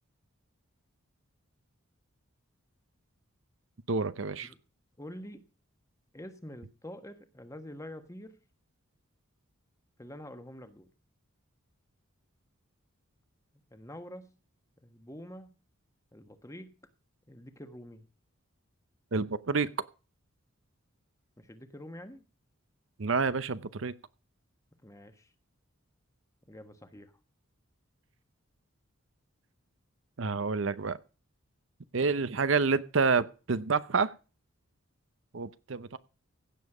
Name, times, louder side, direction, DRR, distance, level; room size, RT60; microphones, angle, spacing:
voice 1, 3.9-4.5 19.1-19.7 23.0-23.9 30.2-31.0 31.9-34.1 35.3-36.0, right 4 dB, 65° right, 0.7 m, -28 dB
voice 2, 5.0-5.4 6.1-8.4 10.0-10.9 13.7-14.3 14.8-15.5 16.1-16.7 17.3-18.0 21.4-22.3 24.8-25.3 26.5-27.1, left 1 dB, 15° left, 1.3 m, -46 dB
16.0 x 7.4 x 4.9 m
head